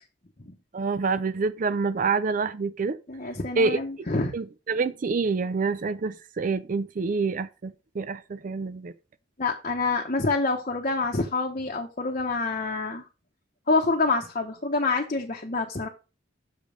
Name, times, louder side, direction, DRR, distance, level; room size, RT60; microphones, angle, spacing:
voice 1, 0.7-3.0 3.6-3.8 4.3-8.9, right 4 dB, 45° right, 0.4 m, -27 dB
voice 2, 3.1-4.4 9.4-13.0 13.7-15.9, left 3 dB, 40° left, 0.9 m, -27 dB
6.5 x 5.2 x 5.0 m
head